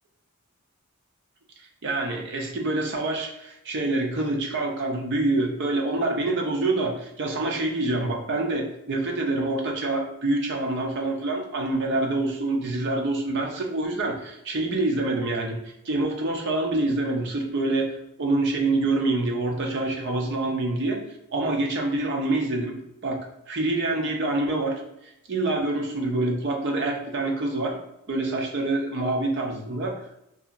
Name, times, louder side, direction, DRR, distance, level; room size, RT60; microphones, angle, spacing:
voice 1, 1.8-15.6 15.8-21.0 21.3-23.2 23.5-24.8 25.3-27.8 28.1-30.0, right 2 dB, 50° right, 1 dB, 0.6 m, -26 dB
2.7 x 2.7 x 2.5 m, 0.83 s
head